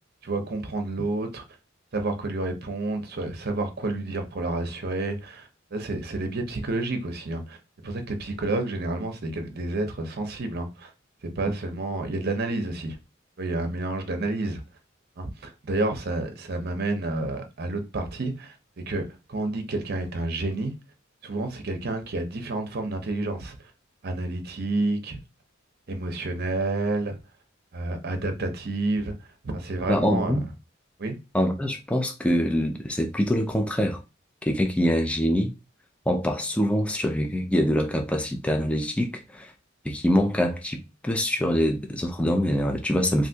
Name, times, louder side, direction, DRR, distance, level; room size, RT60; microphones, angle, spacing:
voice 1, 0.2-1.4 1.9-7.6 7.8-10.9 11.2-13.0 13.4-14.6 15.2-18.6 18.9-20.7 21.2-23.7 24.0-25.2 25.9-27.2 27.7-30.4 31.0-31.2, right 2 dB, 55° right, 0.7 m, -29 dB
voice 2, 29.9-30.4 31.3-34.0 34.4-35.5 36.1-39.5 39.8-43.3, equal, 5° left, 0.4 m, -24 dB
3.3 x 2.6 x 2.7 m
head